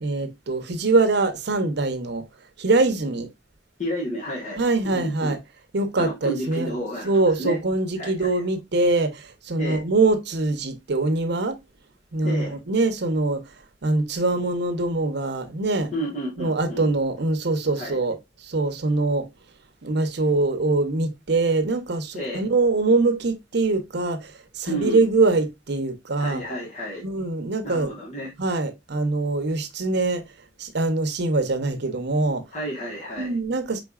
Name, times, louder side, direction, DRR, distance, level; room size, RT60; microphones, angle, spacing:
voice 1, 0.0-2.2 2.6-3.3 4.6-5.4 5.7-6.7 7.0-11.6 12.1-13.4 13.8-15.9 16.4-19.3 19.8-26.4 27.0-27.9 28.4-30.2 30.6-32.4 33.2-33.8, right 3 dB, 65° right, 0.8 m, -23 dB
voice 2, 3.8-4.6 4.9-5.4 6.0-7.1 7.4-7.6 8.0-8.4 9.6-9.8 12.2-12.5 15.9-16.9 17.8-18.0 22.1-22.4 24.7-25.0 26.2-27.0 27.6-28.3 32.5-33.4, equal, 40° left, 1.3 m, -31 dB
4.7 x 3.8 x 2.3 m
head